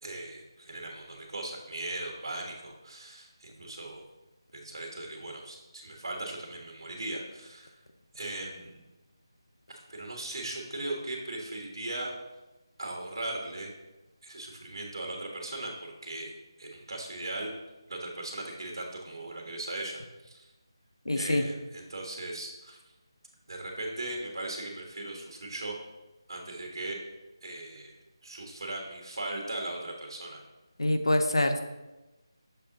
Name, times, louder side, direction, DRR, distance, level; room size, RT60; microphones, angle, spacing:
voice 1, 0.0-4.0 4.5-7.7 8.1-8.8 9.7-12.1 12.8-13.7 14.2-16.3 16.6-17.5 17.9-20.5 21.1-22.8 23.5-25.8 26.3-27.0 27.4-27.9 28.2-30.4, right 2 dB, 60° right, 0 dB, 1.4 m, -38 dB
voice 2, 21.1-21.4 30.8-31.6, left 1 dB, 90° left, 6 dB, 0.8 m, -25 dB
6.7 x 4.2 x 3.9 m, 1.1 s
figure-of-eight pair, 165°, 3 cm